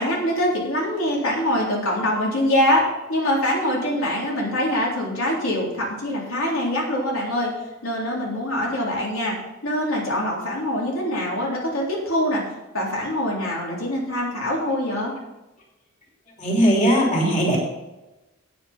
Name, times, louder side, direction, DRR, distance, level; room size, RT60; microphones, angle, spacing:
voice 1, 0.0-2.8 3.1-7.5 7.8-9.4 9.6-12.4 12.7-15.1, left 1 dB, 85° left, -3 dB, 3.6 m, -24 dB
voice 2, 16.4-17.6, equal, 35° left, -3 dB, 3.2 m, -19 dB
9.7 x 9.1 x 5.6 m, 1.0 s
head